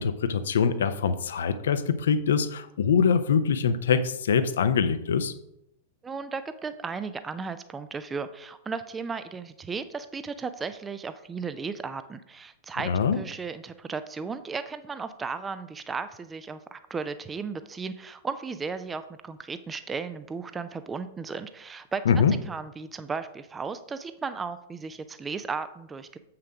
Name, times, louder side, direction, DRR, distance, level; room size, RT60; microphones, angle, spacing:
voice 1, 0.0-5.3 12.8-13.2 22.1-22.3, left 6 dB, 60° left, 11 dB, 0.6 m, -24 dB
voice 2, 6.0-22.0 22.5-26.2, right 5 dB, 15° right, 11 dB, 0.5 m, -35 dB
7.5 x 5.8 x 4.9 m, 0.80 s
figure-of-eight pair, 100°, 0 cm